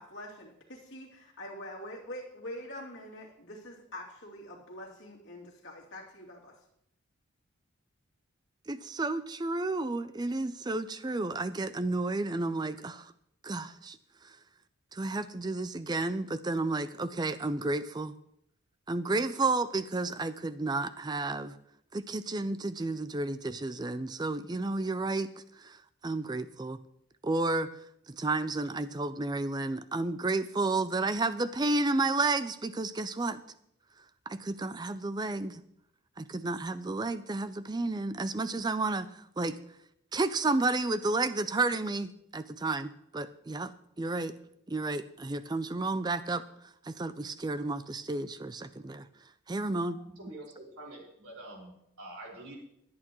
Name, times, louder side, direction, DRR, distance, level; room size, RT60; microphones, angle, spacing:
voice 1, 0.0-6.5, left 1 dB, 60° left, -4 dB, 2.9 m, -45 dB
voice 2, 8.7-13.1 13.4-14.0 14.2-14.4 14.9-18.2 18.9-21.6 21.9-25.3 25.6-26.8 27.2-27.7 28.1-33.4 34.3-35.6 36.2-39.6 40.1-43.7 44.0-44.3 44.7-49.1 49.5-50.0, right 2 dB, 20° right, 13 dB, 0.4 m, -31 dB
voice 3, 50.2-52.6, right 1 dB, 85° right, -3 dB, 4.9 m, -46 dB
24.0 x 8.7 x 3.1 m, 0.77 s
head